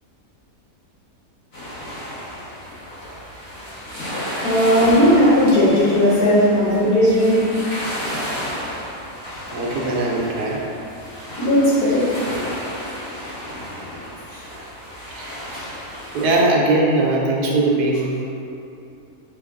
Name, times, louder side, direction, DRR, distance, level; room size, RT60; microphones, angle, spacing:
sound 1, 1.5-16.4, equal, 45° left, 1.1 m, -32 dB
voice 1, 4.4-7.5 11.4-12.2 14.3-14.4 15.6-15.7, equal, 65° left, -10 dB, 2.1 m, -16 dB
voice 2, 9.5-10.6 15.1-15.4 16.1-18.1, right 2 dB, 80° right, -3 dB, 1.2 m, -20 dB
5.8 x 2.0 x 3.6 m, 2.7 s
omnidirectional pair, 1.7 m